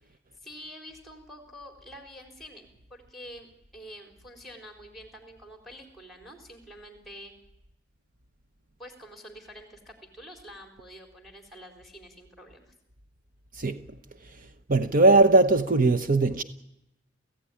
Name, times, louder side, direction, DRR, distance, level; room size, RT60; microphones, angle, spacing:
voice 1, 0.0-7.3 8.8-12.7, equal, ahead, 4.2 m, -47 dB
voice 2, 13.5-13.9 14.2-16.4, right 2 dB, 50° right, 0.9 m, -21 dB
29.0 x 16.0 x 10.0 m
head